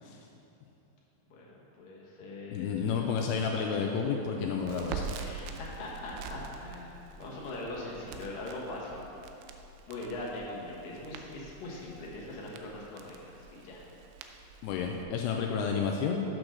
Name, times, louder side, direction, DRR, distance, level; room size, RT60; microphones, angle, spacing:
voice 1, 1.3-3.2 5.2-9.0 9.9-13.8, left 2 dB, 65° left, -4 dB, 2.5 m, -41 dB
voice 2, 2.5-5.1 14.6-16.2, left 6 dB, 90° left, 1 dB, 2.3 m, -31 dB
Crackle, 4.6-15.0, right 5 dB, 80° right, 2.7 m, -45 dB
8.7 x 6.1 x 6.4 m, 2.9 s
omnidirectional pair, 5.1 m